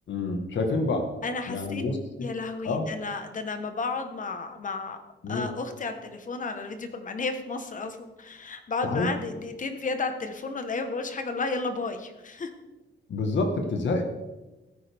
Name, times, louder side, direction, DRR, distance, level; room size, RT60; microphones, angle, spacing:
voice 1, 0.1-1.1 1.5-2.3 2.6-2.9 5.2-5.5 8.8-9.1 13.1-14.0, left 3 dB, 70° left, 5 dB, 1.5 m, -28 dB
voice 2, 1.2-1.8 2.2-5.0 5.3-12.5, left 3 dB, 40° left, 7 dB, 1.2 m, -32 dB
16.0 x 9.2 x 3.5 m, 1.1 s
wide cardioid pair, 145°, 20 cm